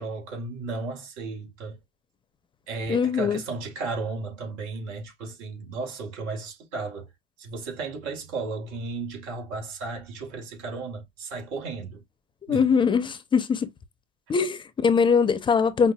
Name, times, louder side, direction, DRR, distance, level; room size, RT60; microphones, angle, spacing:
voice 1, 0.0-1.8 2.7-7.1 7.4-12.0 12.5-12.7, right 3 dB, 80° right, 2.5 m, -34 dB
voice 2, 2.9-3.4 12.5-13.7 14.3-15.9, left 6 dB, 25° left, 0.6 m, -22 dB
5.6 x 2.4 x 2.2 m
supercardioid pair, 110°, 19 cm